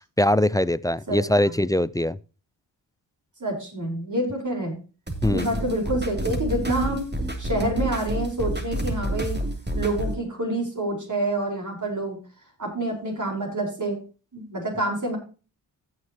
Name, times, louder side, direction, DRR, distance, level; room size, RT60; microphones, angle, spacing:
voice 1, 0.2-2.2 5.2-5.5, left 1 dB, 10° left, 0.4 m, -22 dB
voice 2, 3.4-4.8 5.3-7.1 7.4-9.4 9.7-12.2 12.6-14.0 14.3-15.2, right 1 dB, 40° right, 4.8 m, -27 dB
sound 1, 5.1-10.1, right 1 dB, 20° right, 2.9 m, -29 dB
16.0 x 6.6 x 2.9 m
supercardioid pair, 45°, 46 cm